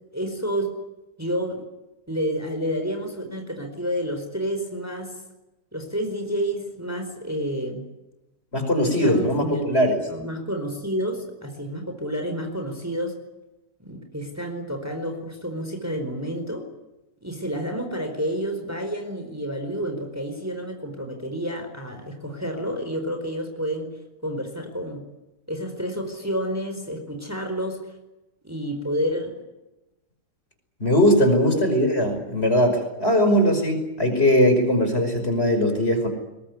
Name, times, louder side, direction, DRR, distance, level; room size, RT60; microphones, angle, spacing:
voice 1, 0.1-0.7 1.2-1.6 2.1-5.1 5.7-7.8 8.8-13.1 13.8-16.7 17.2-23.9 24.2-25.0 25.5-27.8 28.4-29.3 31.4-31.6 31.9-32.0, equal, 10° right, 4 dB, 4.5 m, -29 dB
voice 2, 8.5-10.0 30.8-36.1, equal, 35° left, 6 dB, 5.7 m, -20 dB
22.0 x 21.5 x 9.6 m, 0.99 s
omnidirectional pair, 1.8 m